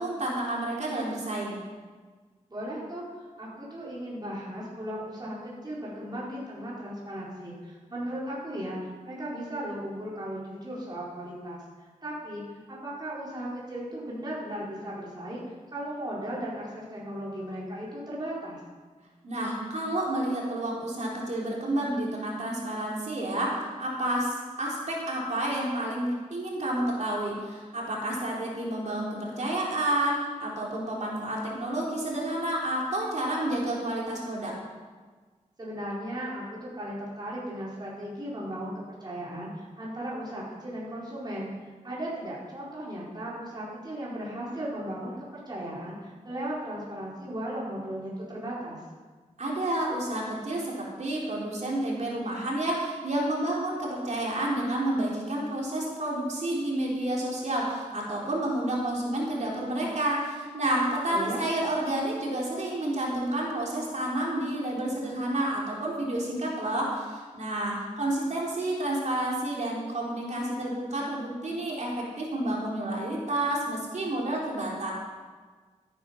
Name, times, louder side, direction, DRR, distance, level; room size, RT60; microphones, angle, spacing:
voice 1, 0.0-1.6 19.2-34.5 49.4-74.9, right 1 dB, 60° right, -3 dB, 3.7 m, -30 dB
voice 2, 2.5-3.0 3.4-18.6 35.6-48.8 61.1-61.5, right 1 dB, 30° right, -7 dB, 4.3 m, -36 dB
13.5 x 10.0 x 5.8 m, 1.4 s
wide cardioid pair, 80°, 13 cm